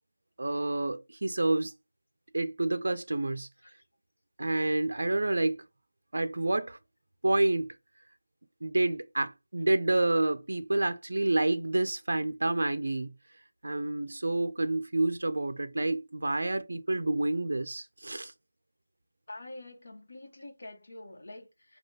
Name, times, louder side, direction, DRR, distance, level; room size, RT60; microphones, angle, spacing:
voice 1, 0.4-1.7 2.3-3.5 4.4-5.6 6.1-6.8 7.2-7.7 8.6-13.1 13.6-18.3, right 2 dB, 65° right, 0.4 m, -28 dB
voice 2, 19.3-21.8, left 2 dB, 55° left, 1.0 m, -46 dB
4.3 x 2.3 x 3.3 m
figure-of-eight pair, 180°, 0 cm